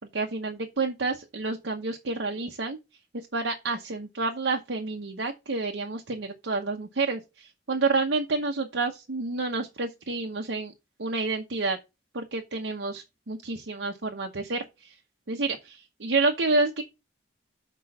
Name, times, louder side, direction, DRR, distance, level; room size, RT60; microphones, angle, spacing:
voice 1, 0.1-2.8 3.1-10.7 11.0-11.8 12.1-15.0 15.3-16.8, right 3 dB, 80° right, 0.9 m, -29 dB
6.2 x 4.5 x 6.4 m
head